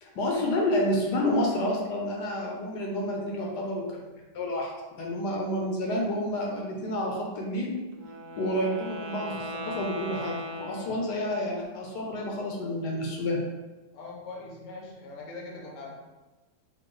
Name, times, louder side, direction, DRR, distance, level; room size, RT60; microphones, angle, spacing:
voice 1, 0.0-4.7 5.0-7.8 8.4-13.4, left 1 dB, 75° left, -1 dB, 1.2 m, -29 dB
Wind instrument woodwind instrument, 7.9-11.6, left 1 dB, 70° right, 1.0 m, -39 dB
voice 2, 13.9-16.0, left 3 dB, 55° left, -2 dB, 0.9 m, -41 dB
4.3 x 2.3 x 3.2 m, 1.2 s
omnidirectional pair, 1.9 m